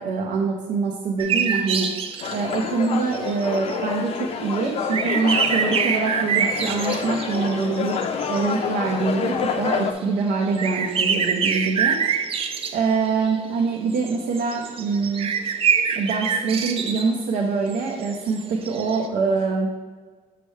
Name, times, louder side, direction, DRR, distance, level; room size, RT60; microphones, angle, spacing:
voice 1, 0.0-1.9 2.3-8.0 8.3-12.0 12.7-15.3 15.9-19.7, right 4 dB, 75° right, -1 dB, 0.8 m, -24 dB
sound 1, 1.2-3.8 4.7-9.0 9.3-9.8 10.0-19.1, right 6 dB, 40° right, 0.5 m, -26 dB
sound 2, 2.2-9.9, left 6 dB, 45° left, 0.5 m, -28 dB
6.8 x 5.5 x 3.2 m, 1.4 s
cardioid pair, 160°, 14 cm